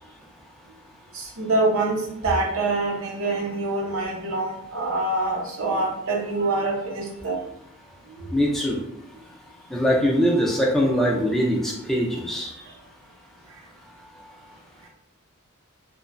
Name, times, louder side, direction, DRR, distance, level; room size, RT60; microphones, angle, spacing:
voice 1, 1.1-7.4 8.2-8.3, right 2 dB, 75° right, 0 dB, 0.7 m, -25 dB
voice 2, 8.3-8.8 9.7-12.5, equal, ahead, -3 dB, 0.4 m, -22 dB
3.0 x 2.1 x 2.4 m, 0.77 s
head